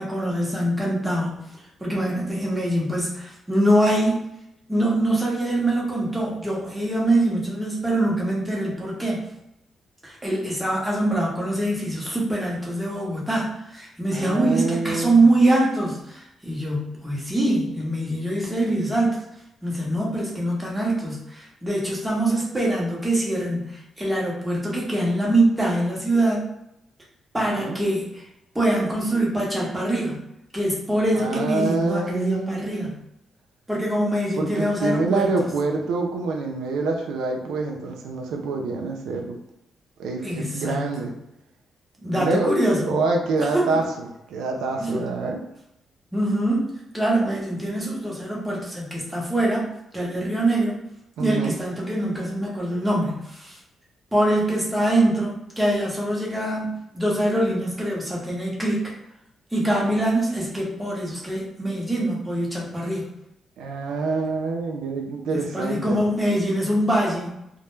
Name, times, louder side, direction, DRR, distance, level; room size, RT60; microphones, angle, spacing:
voice 1, 0.0-1.5 1.8-4.3 4.7-9.2 10.0-19.2 19.6-26.5 27.3-28.3 28.5-30.2 30.5-33.0 33.7-35.5 40.2-40.9 42.0-42.9 43.4-43.8 44.8-45.1 46.1-50.8 51.2-53.6 54.1-58.9 59.5-63.1 65.3-67.4, right 1 dB, 10° right, -4 dB, 0.8 m, -24 dB
voice 2, 14.1-15.2 27.6-27.8 31.1-32.9 34.4-39.4 40.0-41.1 42.2-42.5 42.8-45.4 51.2-51.6 63.6-66.1, right 3 dB, 90° right, 2 dB, 0.3 m, -26 dB
2.1 x 2.0 x 3.0 m, 0.82 s
cardioid pair, 95°, 0 cm